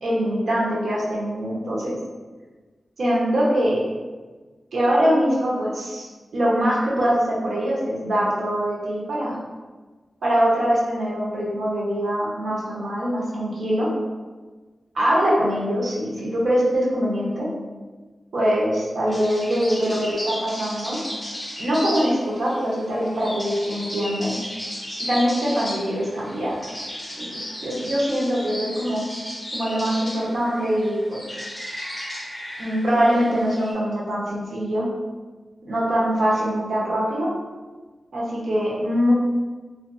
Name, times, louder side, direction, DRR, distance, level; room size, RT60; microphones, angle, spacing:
voice 1, 0.0-2.0 3.0-3.8 4.7-9.4 10.2-13.9 14.9-17.5 18.3-21.0 21.6-24.3 25.0-26.6 27.2-29.1 29.5-31.4 32.6-34.9 35.6-37.3 38.1-39.1, equal, 85° right, -6 dB, 0.7 m, -23 dB
sound 1, 19.1-33.7, equal, 20° left, 0.7 m, -35 dB
2.4 x 2.4 x 2.3 m, 1.3 s
wide cardioid pair, 95°, 0 cm